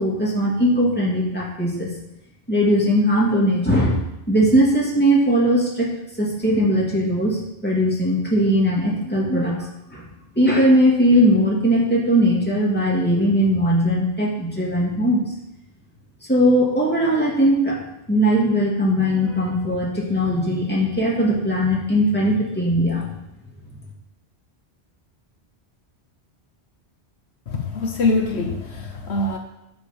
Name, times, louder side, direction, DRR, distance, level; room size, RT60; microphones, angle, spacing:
voice 1, 0.0-1.9 2.5-4.0 4.3-5.9 6.2-10.0 10.4-15.3 16.3-17.8 18.1-23.1, equal, 10° left, -5 dB, 2.6 m, -19 dB
voice 2, 27.5-29.4, left 3 dB, 75° left, 4 dB, 1.2 m, -23 dB
9.9 x 5.2 x 6.9 m, 0.86 s
omnidirectional pair, 1.1 m